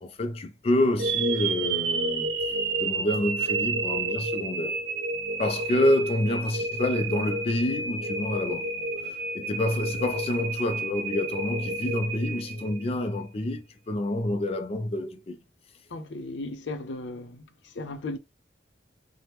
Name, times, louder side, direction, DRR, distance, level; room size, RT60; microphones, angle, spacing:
voice 1, 0.0-2.4 2.8-4.8 5.4-8.7 9.0-15.4, left 1 dB, 35° left, 0.4 m, -28 dB
sound 1, 1.0-13.1, right 3 dB, 75° right, 0.6 m, -30 dB
voice 2, 15.9-18.2, left 2 dB, 85° left, 0.6 m, -36 dB
3.3 x 2.0 x 2.9 m
head